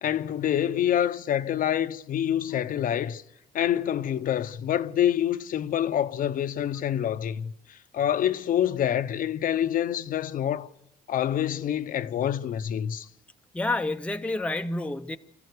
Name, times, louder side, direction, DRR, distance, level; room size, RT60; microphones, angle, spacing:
voice 1, 0.0-3.2 3.5-10.7 11.1-13.1, left 10 dB, 55° left, 0.8 m, -26 dB
voice 2, 13.5-15.2, left 2 dB, 5° left, 0.7 m, -29 dB
26.5 x 14.5 x 6.7 m
cardioid pair, 110°, 17 cm